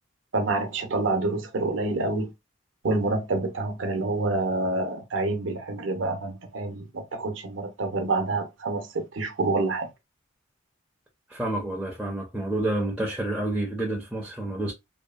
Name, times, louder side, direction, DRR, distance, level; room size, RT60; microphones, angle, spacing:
voice 1, 0.3-2.3 2.8-9.9, right 2 dB, 75° right, 0.6 m, -27 dB
voice 2, 11.3-14.7, right 1 dB, 5° right, 0.4 m, -29 dB
2.7 x 2.3 x 2.3 m
head